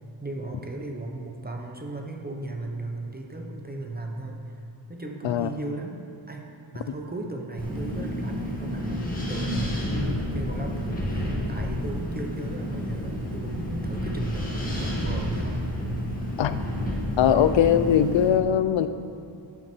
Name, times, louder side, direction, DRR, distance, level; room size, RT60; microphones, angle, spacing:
voice 1, 0.2-4.4 4.9-6.0 6.3-6.5 6.7-15.7, right 2 dB, 20° right, 1 dB, 0.9 m, -36 dB
Wind, 7.6-18.3, equal, 20° left, 2.0 m, -30 dB
voice 2, 17.2-18.9, left 9 dB, 75° left, 12 dB, 0.7 m, -20 dB
12.5 x 9.6 x 4.5 m, 2.5 s
wide cardioid pair, 175°, 46 cm